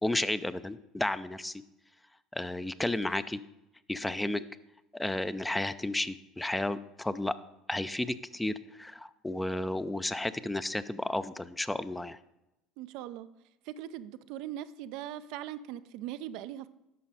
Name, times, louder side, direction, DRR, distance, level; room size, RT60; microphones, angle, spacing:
voice 1, 0.0-1.6 2.3-3.4 3.9-4.4 4.9-7.3 7.7-12.2, left 1 dB, 10° left, 14 dB, 0.5 m, -32 dB
voice 2, 12.8-13.3 13.7-16.7, right 12 dB, 65° right, 12 dB, 0.4 m, -40 dB
11.0 x 6.4 x 4.1 m, 0.92 s
hypercardioid pair, 70°, 0 cm